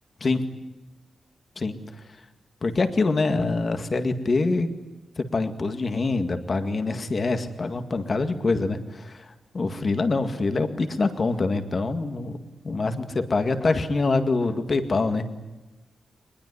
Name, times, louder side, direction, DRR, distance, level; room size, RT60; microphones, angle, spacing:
voice 1, 2.6-4.7 5.2-15.3, left 3 dB, 35° left, 8 dB, 2.0 m, -25 dB
23.0 x 21.0 x 9.8 m, 1.1 s
wide cardioid pair, 165°, 0 cm